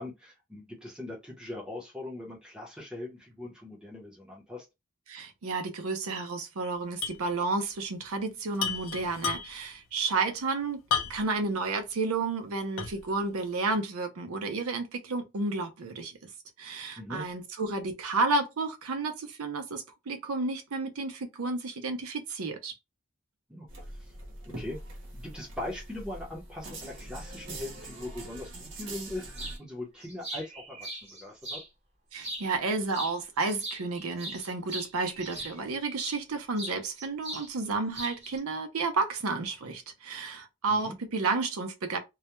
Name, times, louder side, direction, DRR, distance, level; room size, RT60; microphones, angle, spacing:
voice 1, 0.0-4.7 17.0-17.2 23.5-23.7 24.0-24.1 24.6-24.8 25.1-29.3 29.6-31.6 40.7-40.9, left 1 dB, 5° right, 0.7 m, -40 dB
voice 2, 5.1-10.8 11.1-16.2 16.6-22.7 32.1-42.0, right 3 dB, 80° right, 0.6 m, -31 dB
sound 1, 7.0-7.3 7.5-7.6 8.5-9.7 10.9-11.4 11.9-12.0 12.8-13.1, left 7 dB, 65° left, 0.6 m, -32 dB
sound 2, 23.7-29.6, right 1 dB, 55° right, 0.9 m, -43 dB
sound 3, 29.3-29.6 30.0-31.7 32.1-32.7 32.9-36.2 36.6-37.5 37.7-38.4, right 1 dB, 30° right, 1.0 m, -40 dB
2.3 x 2.1 x 2.9 m
head